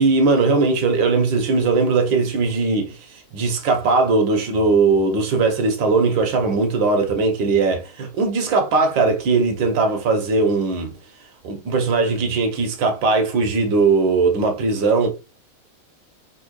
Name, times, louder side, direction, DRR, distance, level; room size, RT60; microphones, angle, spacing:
voice 1, 0.0-3.0 3.3-10.9 11.4-15.1, right 3 dB, 65° right, 1.6 m, -19 dB
3.7 x 3.1 x 4.6 m
omnidirectional pair, 2.3 m